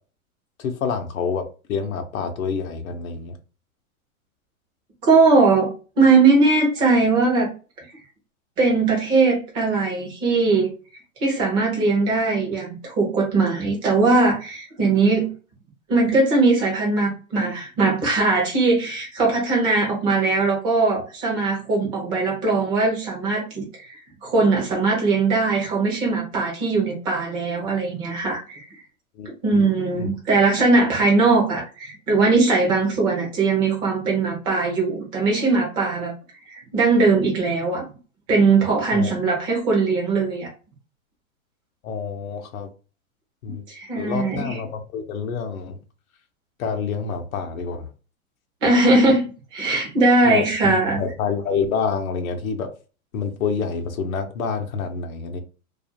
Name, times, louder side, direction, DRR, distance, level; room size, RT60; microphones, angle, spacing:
voice 1, 0.6-3.3 29.2-29.7 29.9-30.1 38.9-39.1 41.8-42.7 43.4-43.6 44.0-45.8 46.6-47.9 50.2-52.7 53.1-55.4, left 5 dB, 70° left, 0.6 m, -27 dB
voice 2, 5.0-7.5 8.6-10.7 11.2-15.3 15.9-28.6 29.4-36.1 36.5-37.8 38.3-40.5 43.7-44.6 48.6-49.2 49.5-51.0, right 3 dB, 10° right, 0.4 m, -20 dB
2.4 x 2.4 x 2.7 m
hypercardioid pair, 140°, 43 cm